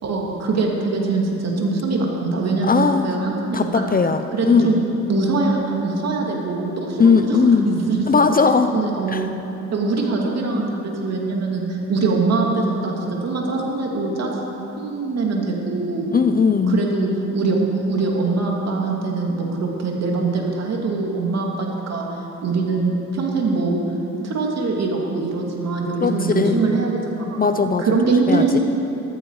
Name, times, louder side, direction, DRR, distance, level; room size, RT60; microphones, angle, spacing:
voice 1, 0.0-3.8 4.3-4.8 5.1-7.4 7.7-8.3 8.7-9.3 9.7-14.3 14.8-16.1 16.7-22.1 22.4-23.8 24.2-27.3 27.8-28.6, right 3 dB, 60° right, 0 dB, 2.6 m, -22 dB
voice 2, 2.6-3.1 3.5-4.8 7.0-7.7 8.1-8.7 9.1-9.2 16.1-16.8 26.0-26.6 27.4-27.9 28.3-28.6, left 5 dB, 30° left, 8 dB, 0.6 m, -18 dB
14.0 x 14.0 x 4.9 m, 3.0 s
cardioid pair, 90°, 30 cm